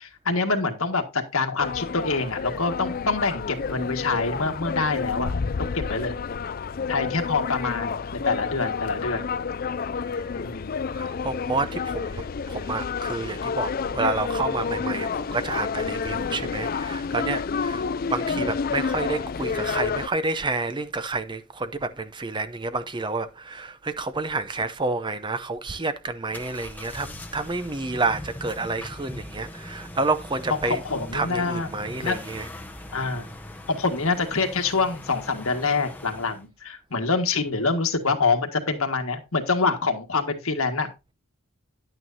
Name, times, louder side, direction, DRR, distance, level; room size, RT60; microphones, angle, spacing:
voice 1, 0.0-5.3 5.6-6.1 6.9-9.3 10.3-10.8 18.3-18.4 30.5-31.7 32.0-32.2 32.9-33.3 33.7-40.9, left 4 dB, 70° left, 1.7 m, -26 dB
sound 1, 1.6-20.1, left 5 dB, 40° left, 0.4 m, -29 dB
voice 2, 10.9-30.8 31.1-32.4, right 3 dB, 20° right, 0.6 m, -29 dB
sound 2, 26.3-36.5, left 1 dB, 10° left, 0.8 m, -41 dB
11.0 x 9.0 x 2.7 m
head